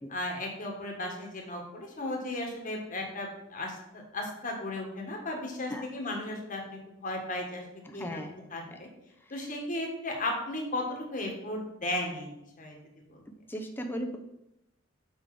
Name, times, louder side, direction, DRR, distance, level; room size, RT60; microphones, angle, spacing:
voice 1, 0.1-8.2 8.5-8.9 9.3-12.8 13.1-13.2, left 1 dB, 40° left, 0 dB, 1.5 m, -35 dB
voice 2, 7.8-8.3 8.7-8.8 9.4-9.5 13.5-14.2, equal, 10° left, 4 dB, 0.7 m, -37 dB
6.1 x 5.2 x 4.8 m, 0.86 s
head